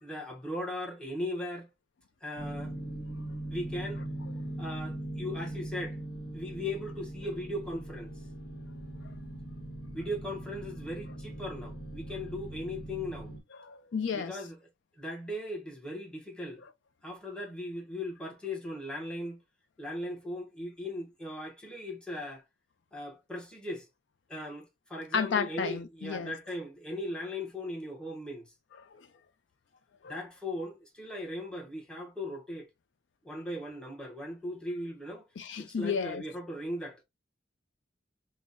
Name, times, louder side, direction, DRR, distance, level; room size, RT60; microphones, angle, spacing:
voice 1, 0.0-1.7 2.2-2.7 3.5-4.0 4.6-6.0 6.3-8.2 9.9-13.3 14.1-14.6 15.0-16.6 17.0-19.4 19.8-22.4 22.9-23.9 24.3-28.5 30.1-32.7 33.2-35.3 35.6-37.0, left 1 dB, 5° left, 1.0 m, -38 dB
sound 1, 2.4-13.4, right 1 dB, 50° left, 1.3 m, -40 dB
voice 2, 13.6-14.3 25.1-26.3 28.9-29.0 30.0-30.2 35.4-36.2, left 6 dB, 70° left, 0.4 m, -32 dB
5.3 x 2.1 x 2.5 m
head